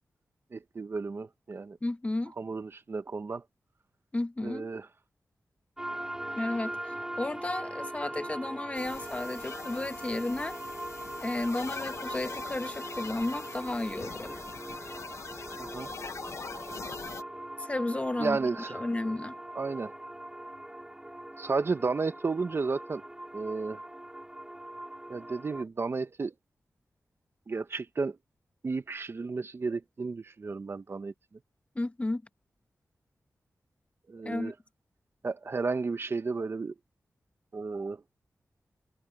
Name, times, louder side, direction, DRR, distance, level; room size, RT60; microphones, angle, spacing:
voice 1, 0.5-1.8 2.4-3.4 4.4-4.9 15.6-15.9 18.2-18.8 19.5-20.0 21.4-23.0 23.3-23.8 25.1-26.3 27.5-28.2 28.6-31.1 34.1-34.5 35.2-36.7 37.5-38.0, right 4 dB, 45° right, 0.8 m, -33 dB
voice 2, 1.8-2.3 4.1-4.7 6.3-10.6 11.2-14.4 17.3-18.4 18.7-19.4 31.7-32.2 34.2-34.5, left 2 dB, 20° left, 1.4 m, -33 dB
sound 1, 5.8-25.6, right 1 dB, 10° right, 2.5 m, -41 dB
sound 2, 8.7-17.2, left 5 dB, 55° left, 0.8 m, -43 dB
wide cardioid pair, 130°, 6 cm